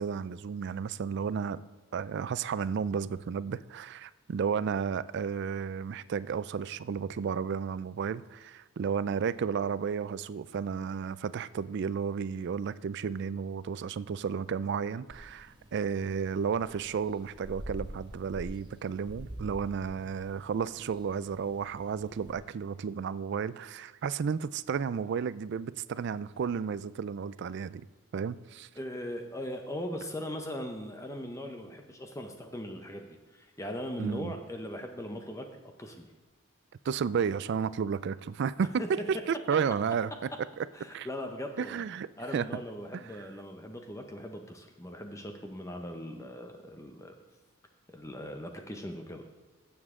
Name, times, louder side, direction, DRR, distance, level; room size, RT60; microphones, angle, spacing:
voice 1, 0.0-1.6 1.9-27.9 28.1-28.7 34.0-34.3 36.8-40.3 40.6-40.7 40.9-41.1 41.6-42.1 42.3-42.6 42.9-43.2, right 6 dB, 55° right, 17 dB, 0.3 m, -32 dB
sound 1, 15.1-22.3, equal, 20° right, 1.1 m, -47 dB
voice 2, 28.8-36.1 38.8-39.1 40.7-41.8 42.2-47.2 47.9-49.2, equal, 15° left, 4 dB, 0.7 m, -39 dB
16.0 x 7.1 x 3.7 m, 1.3 s
head